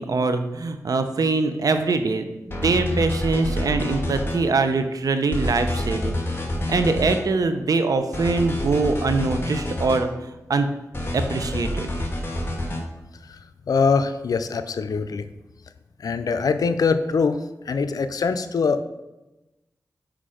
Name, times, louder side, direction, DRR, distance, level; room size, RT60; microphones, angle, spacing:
voice 1, 0.0-6.2 6.7-10.1 10.5-10.7 11.1-11.9, right 3 dB, 75° right, 8 dB, 0.7 m, -23 dB
sound 1, 2.5-4.4 5.3-7.2 8.1-10.0 10.9-12.8, left 1 dB, 35° left, 1.6 m, -27 dB
voice 2, 13.2-15.3 16.0-18.8, left 5 dB, 80° left, 10 dB, 0.5 m, -23 dB
5.9 x 5.1 x 5.0 m, 1.0 s
cardioid pair, 60°, 6 cm